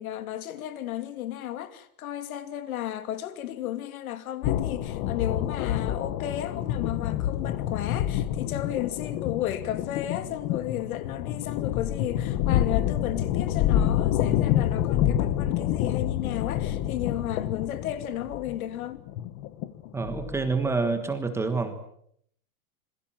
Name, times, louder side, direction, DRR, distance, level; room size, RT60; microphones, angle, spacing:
voice 1, 0.0-19.0, left 12 dB, 70° left, 2.7 m, -33 dB
sound 1, 4.4-20.6, left 11 dB, 25° left, 1.0 m, -28 dB
voice 2, 19.9-21.9, right 4 dB, 5° right, 1.3 m, -27 dB
27.0 x 22.0 x 7.4 m
supercardioid pair, 180°, 44 cm